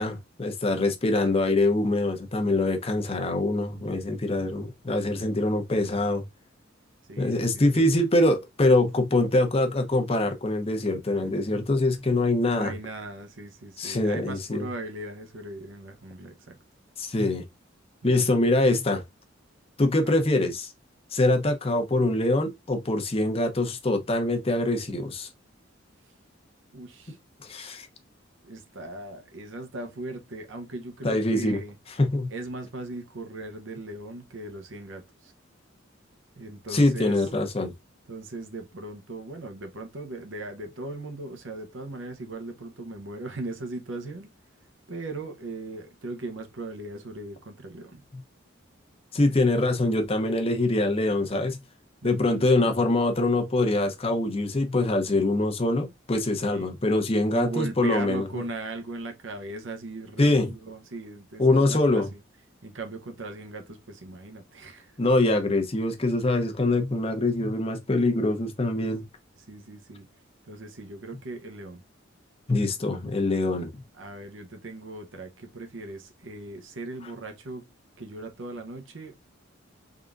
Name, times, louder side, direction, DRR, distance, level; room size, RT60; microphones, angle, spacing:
voice 1, 0.0-6.2 7.2-12.8 13.8-14.7 17.0-17.4 18.0-19.0 19.8-20.7 21.1-25.3 27.4-27.9 31.0-31.6 32.0-32.3 36.7-37.7 49.1-51.6 52.0-58.4 60.2-60.5 61.4-62.1 65.0-69.0 72.5-73.7, left 2 dB, 30° left, 0.7 m, -24 dB
voice 2, 7.1-7.9 12.5-16.6 18.0-18.2 20.0-20.2 26.7-27.2 28.4-31.7 32.3-35.3 36.4-37.2 38.1-44.3 44.9-48.1 52.0-52.4 56.4-56.7 57.3-62.2 62.6-65.1 69.5-70.1 70.4-71.8 74.0-77.7 78.0-79.1, right 2 dB, 70° right, 0.8 m, -38 dB
3.8 x 3.5 x 2.5 m
head